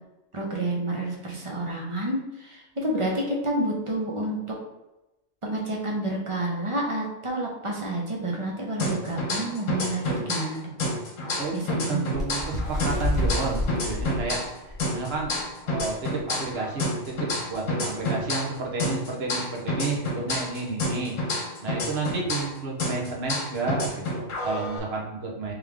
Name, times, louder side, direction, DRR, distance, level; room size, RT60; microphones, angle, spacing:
voice 1, 0.3-4.4 5.4-10.7 11.5-12.1, right 1 dB, 30° right, -1 dB, 0.8 m, -29 dB
sound 1, 8.8-10.5 10.8-14.5 14.8-18.5 18.8-22.5 22.8-24.8, left 1 dB, 75° left, 1.3 m, -29 dB
voice 2, 11.4-15.3 15.6-25.5, right 3 dB, 50° right, -1 dB, 1.1 m, -31 dB
Bird, 12.1-15.3 15.8-15.9 16.2-16.5 17.2-17.3, left 1 dB, ahead, 1.2 m, -29 dB
3.6 x 3.2 x 3.4 m, 0.98 s
omnidirectional pair, 1.4 m